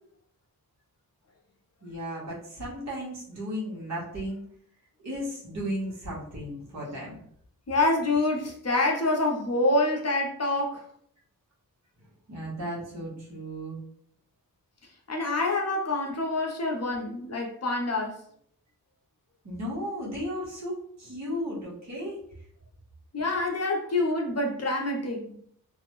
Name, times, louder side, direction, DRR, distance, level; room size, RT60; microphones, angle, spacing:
voice 1, 1.8-4.4 5.0-7.2 12.3-13.8 19.4-22.2, equal, 50° right, -6 dB, 1.1 m, -35 dB
voice 2, 7.7-10.8 15.1-18.2 23.1-25.4, left 2 dB, 45° left, 0 dB, 0.6 m, -26 dB
2.6 x 2.1 x 2.9 m, 0.64 s
wide cardioid pair, 95°, 37 cm